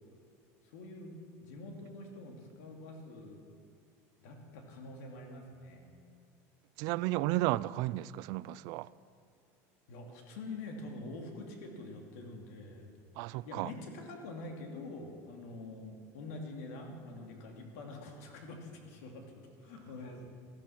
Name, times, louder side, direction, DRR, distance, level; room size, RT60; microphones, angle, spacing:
voice 1, 0.6-3.4 4.2-5.8 9.9-12.9 13.4-19.3 19.6-20.3, left 2 dB, 80° left, 2.6 m, -46 dB
voice 2, 6.8-8.9 13.2-13.7, right 17 dB, 55° right, 0.3 m, -33 dB
15.0 x 14.0 x 5.9 m
cardioid pair, 165°, 8 cm